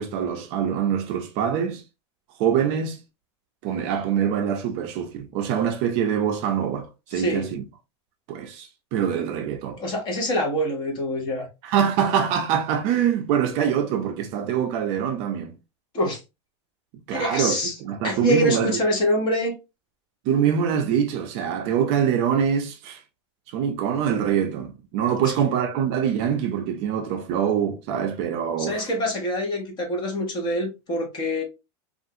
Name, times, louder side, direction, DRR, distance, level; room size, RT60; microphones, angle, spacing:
voice 1, 0.0-1.8 2.4-3.0 3.6-7.6 8.3-9.8 11.6-15.5 17.1-18.8 20.3-23.0 23.5-28.9, right 8 dB, 40° right, 0.5 m, -24 dB
voice 2, 7.1-7.5 9.8-11.5 15.9-16.2 17.1-17.7 18.0-19.5 25.2-25.5 28.6-31.4, equal, 30° left, 1.1 m, -25 dB
3.4 x 2.4 x 2.7 m
supercardioid pair, 160°, 15 cm